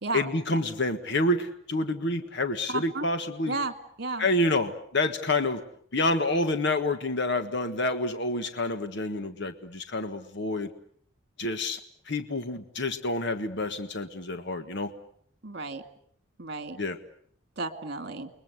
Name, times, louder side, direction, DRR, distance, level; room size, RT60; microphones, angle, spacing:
voice 1, 0.1-3.5 4.2-5.6 5.9-10.7 11.4-11.8 12.1-14.9 16.8-17.0, left 2 dB, 60° left, 8 dB, 1.5 m, -28 dB
voice 2, 2.7-3.0 3.5-3.7 4.0-4.2 15.4-15.8 16.4-16.8 17.6-18.3, right 3 dB, 55° right, 8 dB, 2.4 m, -32 dB
30.0 x 22.0 x 8.1 m, 0.63 s
head